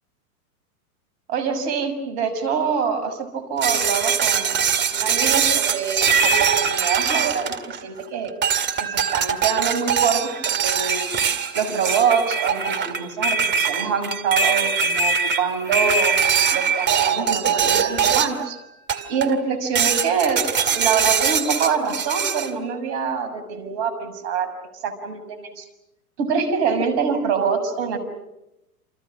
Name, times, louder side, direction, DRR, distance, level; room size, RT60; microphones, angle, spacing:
voice 1, 1.3-4.6 4.9-8.3 8.8-11.0 11.5-16.2 16.5-18.6 19.1-20.4 20.7-24.5 24.8-25.6 26.2-28.0, right 6 dB, 50° right, 9 dB, 6.7 m, -25 dB
sound 1, 3.6-8.0 8.4-18.5 18.9-19.4 19.7-22.5, right 6 dB, 25° right, 2.2 m, -22 dB
29.0 x 28.0 x 6.3 m, 0.90 s
hypercardioid pair, 105°, 45 cm